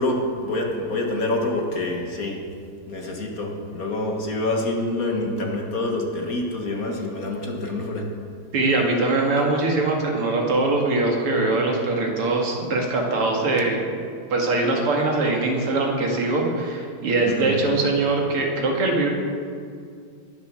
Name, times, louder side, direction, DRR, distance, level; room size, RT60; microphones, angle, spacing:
voice 1, 0.0-2.4 2.9-8.1 17.2-17.5, left 2 dB, 45° left, 1 dB, 1.8 m, -26 dB
voice 2, 8.5-13.9 14.3-19.1, right 2 dB, 85° right, 0 dB, 2.9 m, -22 dB
20.0 x 7.4 x 6.3 m, 2.2 s
omnidirectional pair, 2.4 m